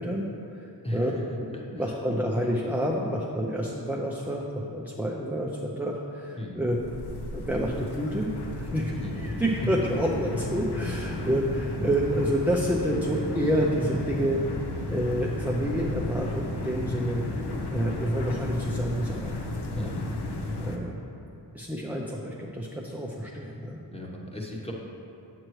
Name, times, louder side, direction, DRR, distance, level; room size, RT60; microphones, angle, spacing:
voice 1, 0.0-6.8 7.3-8.3 8.5-14.4 14.9-17.2 17.7-19.9 20.6-21.0 21.5-23.8, equal, 5° right, -2 dB, 0.5 m, -29 dB
voice 2, 1.5-1.9 6.4-6.6 9.0-9.3 19.7-20.2 23.9-24.7, left 1 dB, 15° left, -2 dB, 1.1 m, -37 dB
sound 1, 6.7-20.8, left 2 dB, 65° left, 0.8 m, -33 dB
8.7 x 7.7 x 3.1 m, 2.9 s
wide cardioid pair, 125°, 43 cm